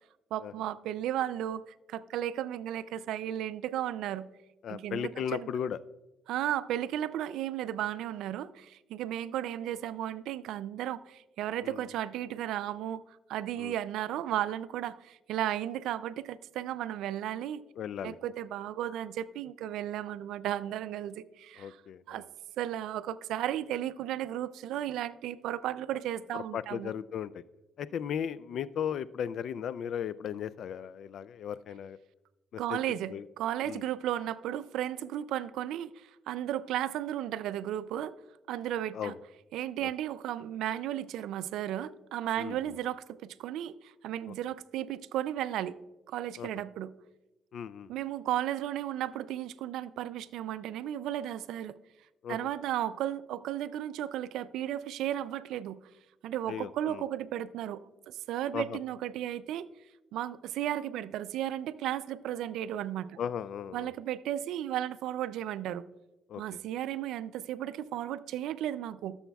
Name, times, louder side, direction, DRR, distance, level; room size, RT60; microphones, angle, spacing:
voice 1, 0.3-4.3 4.7-5.5 6.3-17.6 18.0-21.8 22.1-22.2 22.6-26.9 32.6-38.1 38.5-39.1 39.5-45.8 46.1-46.9 47.9-51.8 52.3-55.8 56.2-59.7 60.1-63.2 63.7-65.9 66.4-69.2, right 12 dB, 85° right, 0.3 m, -34 dB
voice 2, 4.6-5.8 11.6-11.8 13.6-13.7 17.8-18.2 21.6-22.2 26.3-27.4 27.8-32.0 32.5-32.8 33.1-33.2 33.6-33.8 38.9-39.2 39.8-39.9 42.4-42.7 44.3-44.4 46.4-46.5 47.5-47.9 52.2-52.4 56.5-57.0 58.5-58.8 63.2-63.9 66.3-66.4, left 8 dB, 70° left, 0.3 m, -36 dB
15.0 x 7.0 x 2.3 m
cardioid pair, 90°, 0 cm